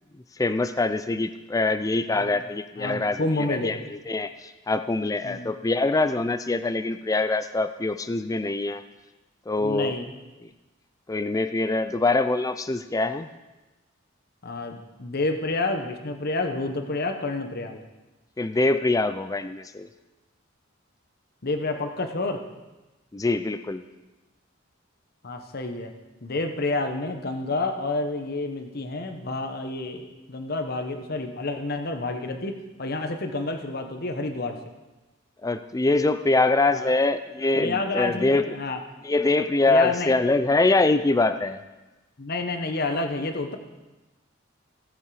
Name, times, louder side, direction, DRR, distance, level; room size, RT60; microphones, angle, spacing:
voice 1, 0.4-8.8 9.5-10.0 11.1-13.3 18.4-19.9 23.1-23.8 35.4-38.6 39.0-41.6, left 2 dB, 15° left, 10 dB, 0.4 m, -24 dB
voice 2, 2.8-3.8 5.2-5.5 9.6-10.1 14.4-17.8 21.4-22.4 25.2-25.9 26.2-34.6 36.7-36.9 37.6-38.8 39.7-40.1 42.2-43.6, left 2 dB, 50° left, 6 dB, 1.0 m, -29 dB
17.0 x 7.4 x 4.9 m, 1.1 s
head